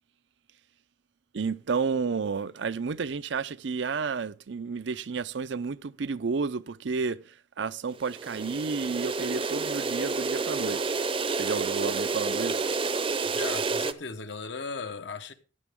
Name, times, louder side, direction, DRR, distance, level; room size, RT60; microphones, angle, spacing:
voice 1, 1.3-11.0 11.4-12.7, right 5 dB, 70° right, 0.5 m, -31 dB
sound 1, 8.0-13.9, right 4 dB, 30° right, 0.6 m, -29 dB
voice 2, 13.2-15.3, left 4 dB, 70° left, 1.1 m, -37 dB
14.5 x 9.9 x 3.6 m
head